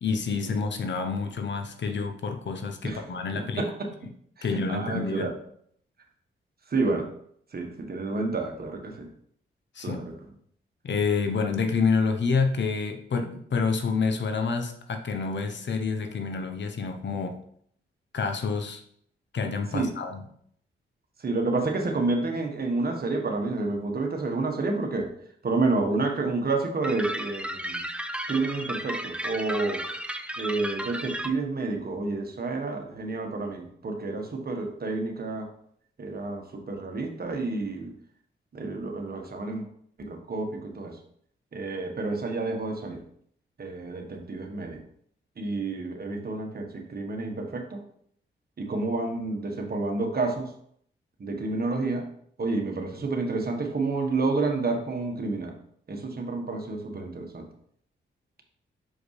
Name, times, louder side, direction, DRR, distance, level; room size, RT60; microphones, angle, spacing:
voice 1, 0.0-3.6 4.4-5.3 9.7-10.0 10.8-17.4 18.1-18.8 19.3-20.3, left 5 dB, 60° left, 6 dB, 0.9 m, -28 dB
voice 2, 3.6-3.9 4.4-5.3 6.7-7.1 7.5-9.1 9.8-10.1 19.7-19.9 21.2-25.1 25.4-27.8 28.3-29.8 30.4-35.5 36.0-37.9 38.5-39.7 40.0-41.0 41.5-43.0 43.6-44.8 45.4-47.8 48.6-50.5 51.2-52.1 52.4-55.5 55.9-57.5, right 3 dB, 50° right, 3 dB, 1.3 m, -29 dB
sound 1, 26.8-31.3, right 1 dB, 5° right, 0.6 m, -34 dB
6.0 x 5.0 x 3.3 m, 0.66 s
cardioid pair, 55°, 21 cm